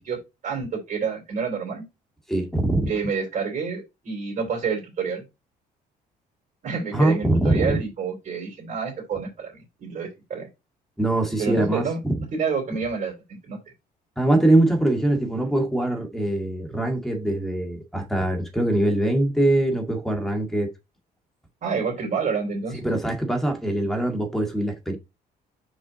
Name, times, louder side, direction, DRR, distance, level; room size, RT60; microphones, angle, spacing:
voice 1, 0.4-1.8 2.9-5.2 6.6-10.5 11.4-12.0 12.3-13.2 13.4-13.6 21.6-22.8, right 5 dB, 50° right, 3.6 m, -28 dB
voice 2, 2.3-2.9 6.9-7.8 11.0-12.2 14.2-20.7 22.7-25.0, right 1 dB, ahead, 2.0 m, -23 dB
6.1 x 4.9 x 4.0 m
cardioid pair, 110°, 17 cm